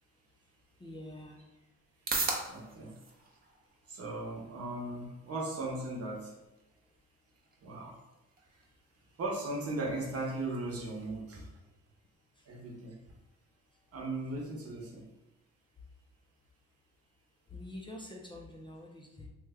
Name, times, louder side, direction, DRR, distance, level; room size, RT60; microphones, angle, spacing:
sound 1, 0.6-17.6, right 3 dB, 30° right, 0.7 m, -45 dB
voice 1, 0.8-1.4 12.3-12.5 13.7-13.8 17.5-19.3, left 1 dB, 15° left, -1 dB, 0.5 m, -46 dB
voice 2, 2.5-2.9 3.9-6.3 7.6-8.0 9.2-11.5 12.5-12.9 13.9-15.0, right 2 dB, 50° right, -2 dB, 1.0 m, -37 dB
3.1 x 2.2 x 3.5 m, 1.0 s
cardioid pair, 90°, 30 cm